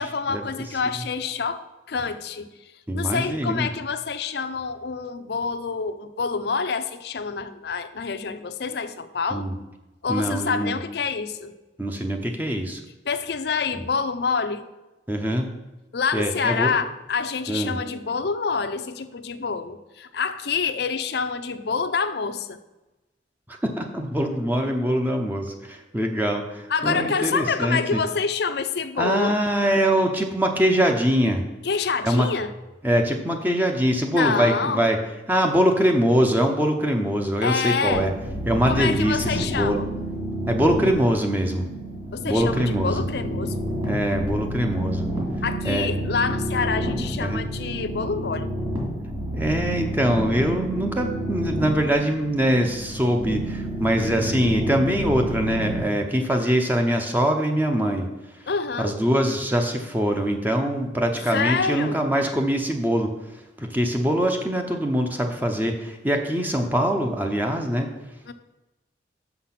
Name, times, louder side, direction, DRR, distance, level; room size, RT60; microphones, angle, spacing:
voice 1, 0.0-2.5 2.9-9.5 10.0-11.5 13.1-14.7 15.9-22.6 26.7-29.4 31.6-32.5 34.1-34.8 37.4-38.1 38.7-39.9 42.1-43.6 45.4-48.5 58.5-59.0 61.3-62.0 68.3-68.4, left 5 dB, 65° left, 10 dB, 0.5 m, -27 dB
voice 2, 2.9-3.7 9.3-9.5 10.1-10.8 11.8-12.8 15.1-15.5 16.1-16.7 17.5-17.8 23.5-28.0 29.0-31.4 32.0-32.3 32.8-35.0 35.3-38.1 38.5-39.8 40.5-41.7 42.2-43.0 43.8-45.1 45.6-45.9 47.2-47.4 49.3-58.5 58.8-67.9, equal, 10° right, 3 dB, 0.6 m, -23 dB
sound 1, 37.9-55.8, equal, 30° right, 2.1 m, -30 dB
6.4 x 5.9 x 5.8 m, 1.0 s
head